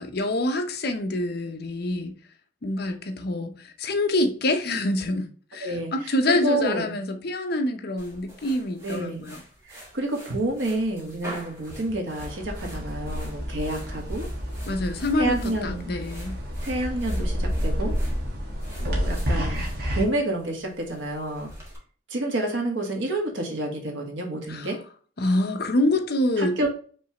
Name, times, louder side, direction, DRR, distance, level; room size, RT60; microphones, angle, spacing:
voice 1, 0.0-2.1 2.6-9.4 14.7-16.4 24.5-24.7 25.2-26.6, left 1 dB, 55° left, 0.7 m, -26 dB
voice 2, 5.6-6.9 8.8-9.3 9.7-14.3 15.2-15.9 16.6-17.9 18.8-19.7 19.9-21.5 22.1-24.8 26.4-26.7, right 1 dB, 85° right, 1.4 m, -29 dB
sound 1, 8.0-21.8, right 1 dB, 15° right, 1.6 m, -47 dB
sound 2, 12.2-20.0, equal, 55° right, 1.2 m, -29 dB
5.2 x 3.2 x 2.9 m
head